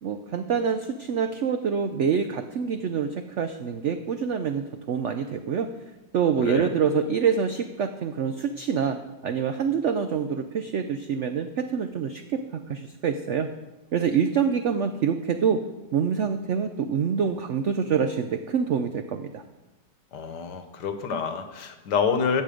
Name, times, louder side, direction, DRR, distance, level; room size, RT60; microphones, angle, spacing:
voice 1, 0.0-5.7 6.1-9.0 9.2-13.5 13.9-15.6 15.9-19.4, right 7 dB, 80° right, 8 dB, 0.6 m, -26 dB
voice 2, 20.1-22.4, left 6 dB, 70° left, 8 dB, 1.5 m, -27 dB
14.5 x 6.6 x 5.0 m, 1.1 s
omnidirectional pair, 1.9 m